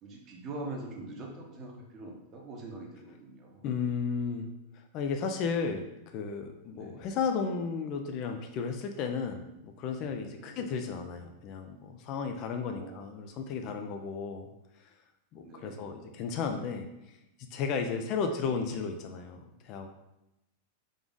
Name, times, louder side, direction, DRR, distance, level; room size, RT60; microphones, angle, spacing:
voice 1, 0.0-3.6 6.7-7.1 10.4-10.7 12.7-13.0 15.4-15.8 17.9-18.2, right 2 dB, 35° right, 0 dB, 1.0 m, -43 dB
voice 2, 3.6-4.5 4.7-14.5 15.3-16.9 17.5-19.9, left 5 dB, 40° left, 5 dB, 0.5 m, -34 dB
3.9 x 3.4 x 3.7 m, 0.90 s
figure-of-eight pair, 90°, 0 cm